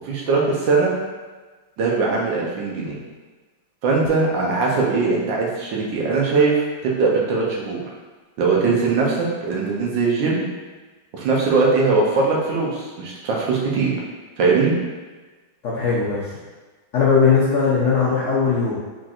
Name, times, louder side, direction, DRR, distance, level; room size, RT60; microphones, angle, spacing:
voice 1, 0.0-0.9 1.8-3.0 3.8-6.5 6.8-7.8 8.4-10.4 11.1-13.9 14.4-14.7, right 4 dB, 70° right, -3 dB, 1.4 m, -20 dB
voice 2, 15.6-16.3 16.9-18.8, left 5 dB, 70° left, -7 dB, 0.7 m, -19 dB
4.5 x 4.1 x 2.4 m, 1.3 s
omnidirectional pair, 2.2 m